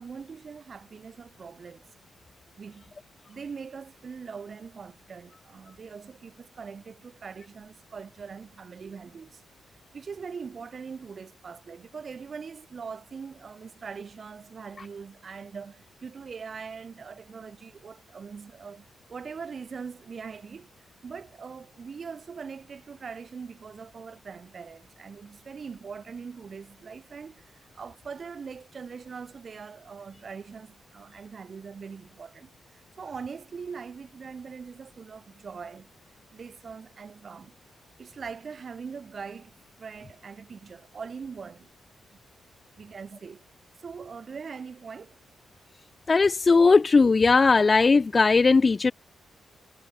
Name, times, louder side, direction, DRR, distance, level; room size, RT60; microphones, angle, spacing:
voice 1, 0.0-1.8 2.6-2.9 3.3-9.4 9.9-20.7 21.0-35.9 36.3-37.5 38.0-41.7 42.1-42.2 42.8-43.5 43.8-45.2, right 5 dB, 35° right, 7.3 m, -42 dB
voice 2, 46.1-48.9, left 4 dB, 25° left, 1.3 m, -18 dB
wide cardioid pair, 170°, 0 cm